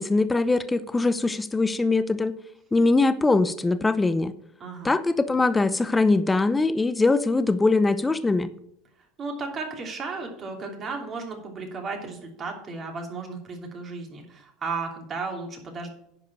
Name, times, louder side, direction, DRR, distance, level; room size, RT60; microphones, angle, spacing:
voice 1, 0.0-2.4 2.7-4.3 4.8-8.5, left 3 dB, 15° left, 14 dB, 0.7 m, -22 dB
voice 2, 4.6-4.9 9.2-15.9, right 4 dB, 35° right, 2 dB, 2.9 m, -34 dB
10.5 x 5.2 x 6.3 m, 0.74 s
hypercardioid pair, 90°, 0 cm